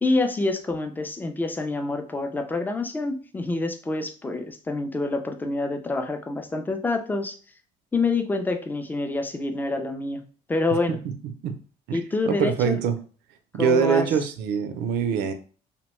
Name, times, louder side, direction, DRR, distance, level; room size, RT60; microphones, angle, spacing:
voice 1, 0.0-7.4 7.9-10.2 10.5-11.0 11.9-12.8 13.6-14.1, left 3 dB, 10° left, 6 dB, 0.4 m, -27 dB
voice 2, 11.9-13.0 13.5-15.3, right 6 dB, 80° right, 8 dB, 0.5 m, -24 dB
2.7 x 2.1 x 3.0 m, 0.40 s
cardioid pair, 110°, 17 cm